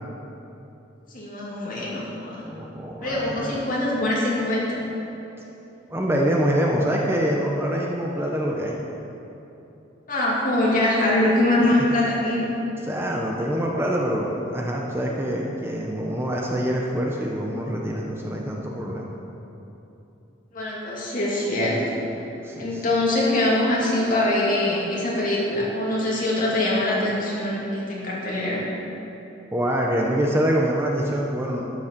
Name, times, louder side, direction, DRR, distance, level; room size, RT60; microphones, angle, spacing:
voice 1, 1.1-2.4 3.0-4.8 10.1-12.5 20.5-22.0 22.6-28.6, left 1 dB, 45° left, -5 dB, 2.5 m, -23 dB
voice 2, 2.4-3.6 5.9-8.8 11.6-11.7 12.8-19.1 22.4-22.8 29.5-31.6, equal, 10° right, -2 dB, 0.7 m, -25 dB
11.5 x 6.3 x 6.6 m, 3.0 s
head